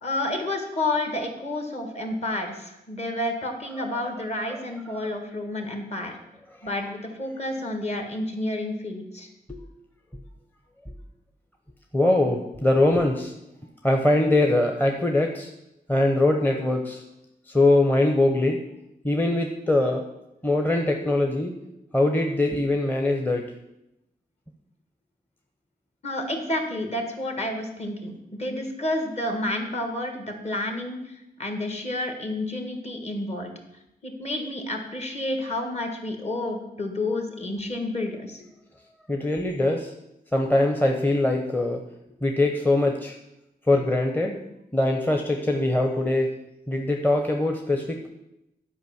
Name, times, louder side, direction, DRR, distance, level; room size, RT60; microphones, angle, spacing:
voice 1, 0.0-6.1 6.6-9.3 26.0-31.1 31.4-33.5 34.0-38.4, left 1 dB, 40° left, 4 dB, 1.7 m, -30 dB
voice 2, 11.9-13.3 13.8-15.5 15.9-17.0 17.5-18.6 19.0-20.0 20.4-21.5 21.9-23.4 39.1-39.9 40.3-41.8 42.2-43.1 43.7-44.4 44.7-46.3 46.7-48.1, left 2 dB, 10° left, 3 dB, 0.8 m, -22 dB
11.0 x 5.2 x 7.0 m, 0.87 s
wide cardioid pair, 140°, 16 cm